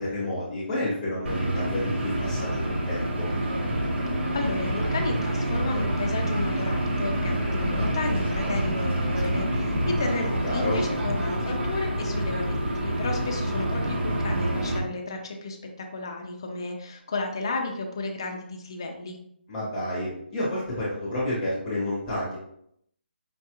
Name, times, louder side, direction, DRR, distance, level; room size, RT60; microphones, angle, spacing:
voice 1, 0.0-3.3 10.4-10.8 19.5-22.4, left 1 dB, 10° left, -7 dB, 0.8 m, -30 dB
sound 1, 1.3-14.8, right 1 dB, 85° right, 1.2 m, -27 dB
voice 2, 4.3-19.2, left 3 dB, 25° left, 2 dB, 0.4 m, -33 dB
5.1 x 2.3 x 2.9 m, 0.71 s
hypercardioid pair, 175°, 6 cm